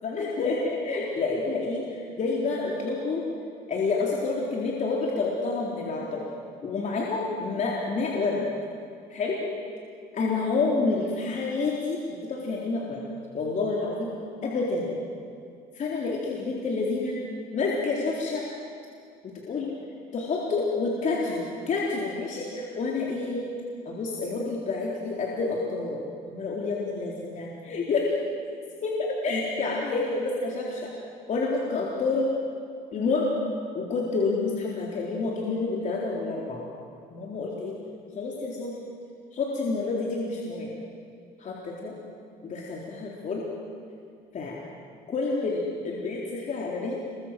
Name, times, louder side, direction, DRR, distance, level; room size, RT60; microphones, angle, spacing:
voice 1, 0.0-3.2 3.7-6.2 6.6-8.4 9.1-9.4 10.1-13.0 13.3-14.1 14.4-15.0 15.7-17.2 17.5-18.5 19.2-19.7 20.1-23.4 23.8-28.1 28.8-30.9 31.3-32.3 32.9-33.3 33.8-36.6 37.1-37.8 38.2-38.8 39.3-40.7 41.4-41.9 42.4-43.4 44.3-44.5 45.1-46.9, left 3 dB, 45° left, -3 dB, 4.0 m, -28 dB
28.5 x 23.0 x 7.8 m, 2.3 s
cardioid pair, 110°, 17 cm